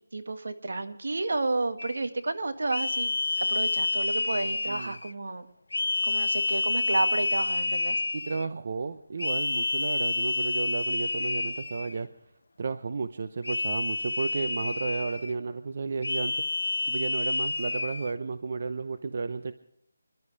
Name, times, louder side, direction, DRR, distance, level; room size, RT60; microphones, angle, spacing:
voice 1, 0.1-3.1 3.4-5.5 6.1-8.0, right 2 dB, 70° right, 8 dB, 1.7 m, -31 dB
sound 1, 1.8-2.0 2.7-5.1 5.7-8.5 9.2-12.0 13.4-15.3 16.0-18.1, left 3 dB, 70° left, 0.8 m, -29 dB
voice 2, 4.7-5.0 8.1-12.1 12.6-16.4 16.9-19.5, right 4 dB, 40° right, 10 dB, 0.7 m, -33 dB
26.0 x 12.0 x 3.4 m, 0.73 s
figure-of-eight pair, 170°, 0 cm